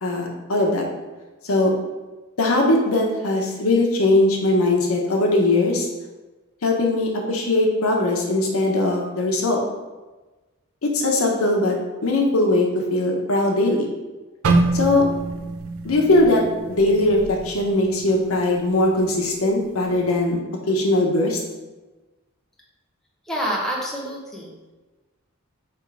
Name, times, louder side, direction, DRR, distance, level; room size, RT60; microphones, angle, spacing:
voice 1, 0.0-0.8 1.4-1.7 2.4-5.9 6.6-9.6 10.8-11.8 12.0-13.9 14.7-15.1 15.8-16.4 16.7-20.4 20.7-21.4, left 2 dB, 90° left, 0 dB, 0.8 m, -20 dB
sound 1, 14.4-18.5 18.8-19.1 19.7-20.1, right 2 dB, 70° right, 0.4 m, -25 dB
voice 2, 23.3-24.7, equal, ahead, -4 dB, 0.8 m, -28 dB
3.5 x 3.0 x 4.7 m, 1.2 s
head